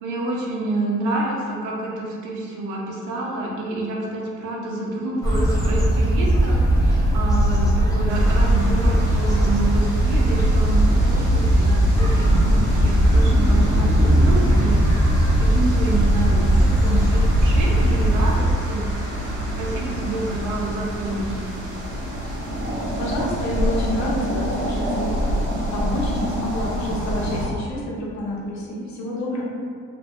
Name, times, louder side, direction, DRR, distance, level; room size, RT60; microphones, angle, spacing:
voice 1, 0.0-15.1 15.4-18.9 19.6-21.4, right 2 dB, 85° right, -2 dB, 0.5 m, -28 dB
sound 1, 5.2-18.4, equal, 10° left, 0.5 m, -18 dB
sound 2, 8.1-27.5, equal, 55° right, 0.8 m, -28 dB
voice 2, 23.0-25.3 25.7-29.4, left 1 dB, 65° left, -4 dB, 0.7 m, -28 dB
2.3 x 2.1 x 2.5 m, 2.1 s
cardioid pair, 90°, 30 cm